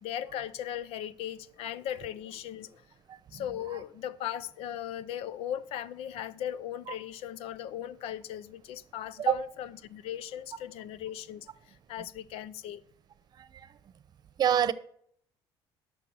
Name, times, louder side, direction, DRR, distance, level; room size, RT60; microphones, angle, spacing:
voice 1, 0.0-2.8 3.3-11.5 11.9-12.8, left 10 dB, 80° left, 0.6 m, -38 dB
voice 2, 3.1-3.5 6.9-7.0 9.3-9.4 12.0-12.1 13.3-13.8 14.4-14.7, right 9 dB, 45° right, 0.8 m, -28 dB
11.5 x 6.8 x 6.2 m
cardioid pair, 125°, 10 cm